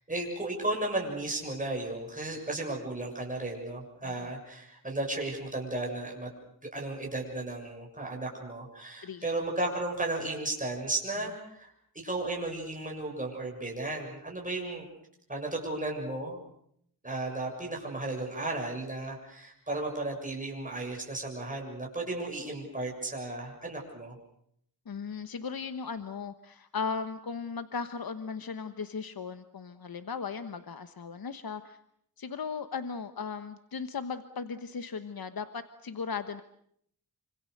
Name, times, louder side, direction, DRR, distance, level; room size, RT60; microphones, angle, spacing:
voice 1, 0.1-6.3 6.6-11.7 12.0-14.9 15.3-16.4 17.0-24.2, right 2 dB, 20° right, 0 dB, 7.0 m, -34 dB
voice 2, 9.0-9.3 24.9-31.8 32.2-36.4, left 5 dB, 65° left, 10 dB, 1.2 m, -37 dB
27.0 x 26.0 x 6.6 m, 0.69 s
wide cardioid pair, 90°, 38 cm